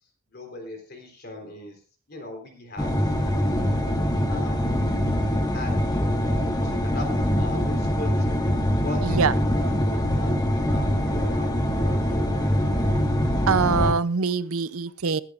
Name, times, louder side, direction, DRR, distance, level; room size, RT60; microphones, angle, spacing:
voice 1, 0.3-1.8 2.1-3.6 4.3-4.8 5.5-8.4 8.8-9.3 9.9-10.3 10.7-11.5 11.8-12.7, left 2 dB, 45° left, 3.8 m, -39 dB
sound 1, 2.8-13.9, equal, 20° left, 1.5 m, -23 dB
voice 2, 9.0-9.3 13.5-15.2, right 5 dB, 85° right, 0.6 m, -23 dB
22.0 x 10.0 x 2.5 m
head